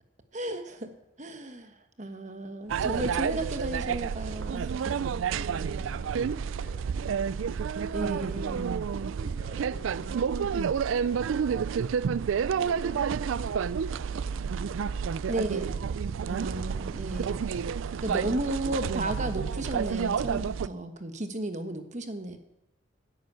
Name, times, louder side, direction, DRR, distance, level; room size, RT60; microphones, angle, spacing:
voice 1, 0.3-0.9 1.2-4.9 7.9-8.7 15.3-15.8 16.2-22.4, right 1 dB, 35° right, 8 dB, 1.2 m, -34 dB
sound 1, 2.6-17.9, left 1 dB, 35° left, 4.8 m, -52 dB
sound 2, 2.7-20.7, right 6 dB, 75° right, 0.4 m, -30 dB
voice 2, 5.3-7.3 8.9-11.7 12.1-15.3 17.6-18.5, right 1 dB, 60° right, 2 dB, 2.2 m, -48 dB
11.0 x 9.3 x 8.3 m, 0.88 s
head